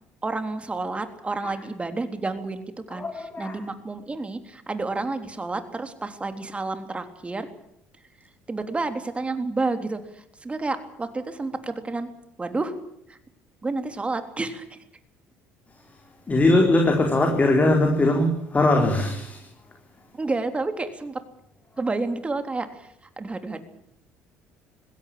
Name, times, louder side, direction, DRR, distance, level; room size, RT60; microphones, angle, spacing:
voice 1, 0.2-7.5 8.5-12.1 12.4-12.7 13.1-13.2 13.6-14.8 20.2-21.2 21.8-22.9 23.2-23.6, right 3 dB, 20° right, 8 dB, 3.5 m, -30 dB
voice 2, 2.9-3.6 16.3-19.4, left 2 dB, 25° left, 3 dB, 4.2 m, -20 dB
20.5 x 17.0 x 8.6 m, 0.76 s
supercardioid pair, 80°, 6 cm